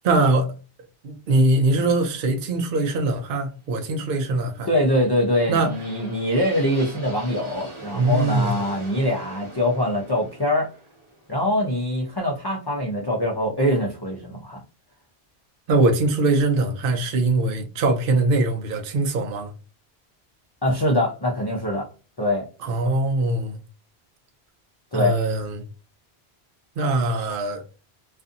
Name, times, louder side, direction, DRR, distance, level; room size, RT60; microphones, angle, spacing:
voice 1, 0.0-0.6 1.0-4.7 5.5-5.7 7.9-8.5 15.7-19.5 22.6-23.6 24.9-25.6 26.8-27.6, right 2 dB, 65° right, 0.7 m, -22 dB
voice 2, 4.7-10.7 11.3-14.6 20.6-21.9 22.2-22.5 24.9-25.2, left 1 dB, 30° left, 0.4 m, -23 dB
sound 1, 4.8-12.7, right 2 dB, 30° right, 0.8 m, -42 dB
2.5 x 2.4 x 2.5 m
omnidirectional pair, 1.1 m